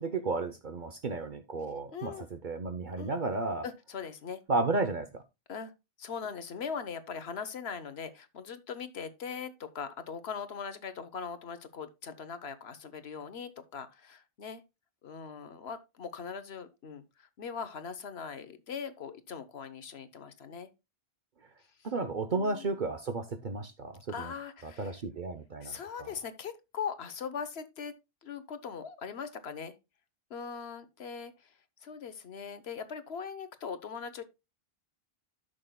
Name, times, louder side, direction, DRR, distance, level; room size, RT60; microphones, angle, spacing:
voice 1, 0.0-3.6 4.5-5.2 21.8-24.3 24.6-26.1, right 3 dB, 55° right, 0.9 m, -33 dB
voice 2, 1.9-2.3 3.0-3.1 3.6-4.4 5.5-5.7 6.0-14.6 15.0-20.7 22.3-22.7 24.1-25.0 25.6-27.9 28.2-29.7 30.3-31.5 31.8-34.2, left 6 dB, 80° left, 1.2 m, -40 dB
13.0 x 6.4 x 2.2 m
omnidirectional pair, 1.0 m